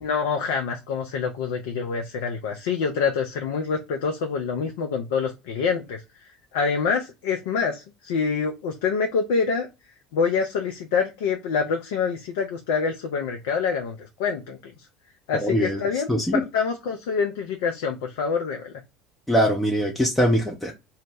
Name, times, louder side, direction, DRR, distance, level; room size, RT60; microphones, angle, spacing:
voice 1, 0.0-6.0 6.5-9.7 10.1-14.7 15.3-18.7, left 5 dB, 65° left, 0.4 m, -26 dB
voice 2, 15.4-15.8 16.1-16.4 19.3-20.7, equal, 5° left, 0.5 m, -22 dB
2.0 x 2.0 x 3.2 m
figure-of-eight pair, 70°, 0 cm